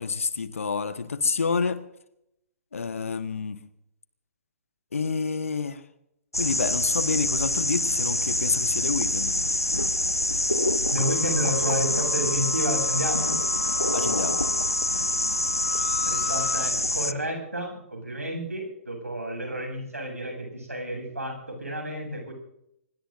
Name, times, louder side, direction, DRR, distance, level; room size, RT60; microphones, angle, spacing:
voice 1, 0.0-1.8 2.7-3.6 4.9-5.8 6.3-9.3 13.9-14.4, left 5 dB, 65° left, 11 dB, 1.4 m, -28 dB
sound 1, 6.3-17.1, left 1 dB, 90° left, 0.8 m, -26 dB
voice 2, 10.9-13.4 16.0-22.3, equal, 80° right, 3 dB, 8.0 m, -30 dB
sound 2, 11.0-16.7, left 12 dB, 30° left, 1.4 m, -36 dB
24.5 x 22.0 x 2.7 m, 0.80 s
figure-of-eight pair, 120°, 8 cm